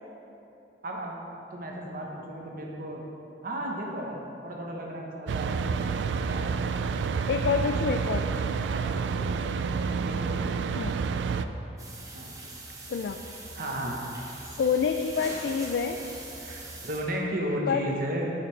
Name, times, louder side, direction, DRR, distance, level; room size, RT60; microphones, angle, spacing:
voice 1, 0.8-1.2 1.5-3.0 3.4-4.2 4.4-5.7 6.2-6.6 8.7-9.2 9.9-10.5 12.1-12.3 13.5-14.0 16.4-18.2, equal, 55° right, -1 dB, 1.0 m, -34 dB
sound 1, 5.3-11.4, right 5 dB, 85° right, 0.3 m, -29 dB
voice 2, 7.3-8.3 10.8-10.9 12.9-13.2 14.6-16.0 17.7-17.9, left 6 dB, 75° left, 5 dB, 0.3 m, -27 dB
sound 2, 11.8-17.0, right 2 dB, 20° right, 0.9 m, -42 dB
8.3 x 6.7 x 3.3 m, 2.9 s
head